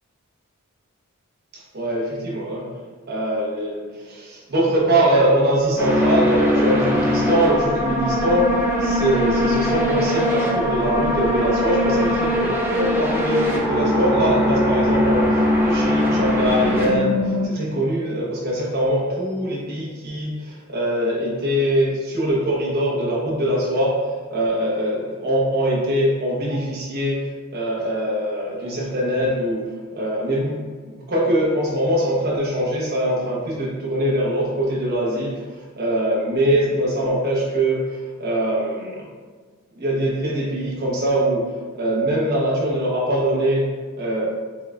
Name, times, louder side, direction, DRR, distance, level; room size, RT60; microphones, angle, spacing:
voice 1, 1.5-2.7 3.1-8.5 8.8-27.3 27.5-39.1 39.8-41.5 41.7-43.7 44.0-44.3, right 1 dB, 50° right, -4 dB, 1.1 m, -22 dB
sound 1, 5.8-17.4, left 1 dB, 10° right, 0.7 m, -21 dB
5.9 x 3.5 x 2.4 m, 1.5 s
head